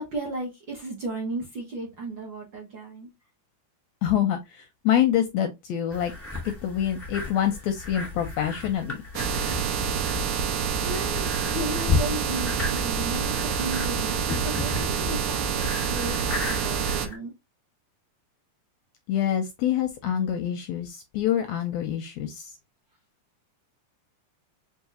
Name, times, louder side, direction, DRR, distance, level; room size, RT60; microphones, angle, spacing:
voice 1, 0.0-3.1 10.5-17.3, right 1 dB, 55° right, 1.4 m, -35 dB
voice 2, 4.0-6.1 6.4-9.0 19.1-22.5, left 10 dB, 80° left, 1.6 m, -26 dB
sound 1, 5.9-17.2, left 3 dB, 5° left, 1.0 m, -34 dB
sound 2, 9.1-17.1, right 6 dB, 75° right, 2.2 m, -27 dB
5.6 x 3.0 x 2.6 m
omnidirectional pair, 3.6 m